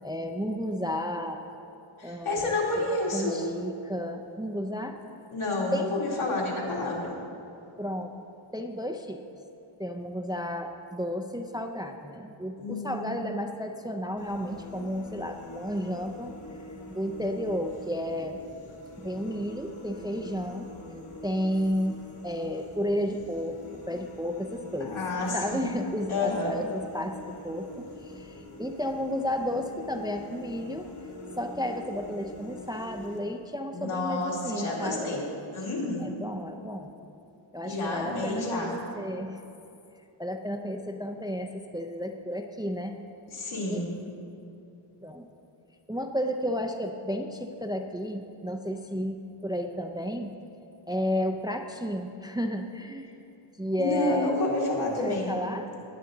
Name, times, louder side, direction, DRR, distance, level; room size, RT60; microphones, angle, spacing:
voice 1, 0.0-1.4 2.0-2.9 3.1-5.0 5.7-6.0 7.8-8.1 8.5-9.2 9.8-16.3 16.9-18.4 19.0-20.7 21.2-22.0 22.2-25.0 25.3-30.9 31.4-35.1 36.0-36.9 37.5-39.4 40.2-43.0 43.7-43.8 45.0-45.3 45.9-50.3 50.9-53.1 53.6-54.3 55.0-55.7, equal, 10° right, 5 dB, 0.4 m, -32 dB
voice 2, 2.0-3.4 5.3-7.1 12.6-13.1 24.8-25.7 26.1-26.5 33.7-35.2 35.5-36.0 37.6-38.7 43.3-43.9 53.8-55.3, left 2 dB, 85° left, -4 dB, 2.8 m, -29 dB
sound 1, 14.2-33.2, left 1 dB, 70° left, 2.1 m, -45 dB
19.5 x 8.0 x 3.9 m, 2.7 s
wide cardioid pair, 175°, 48 cm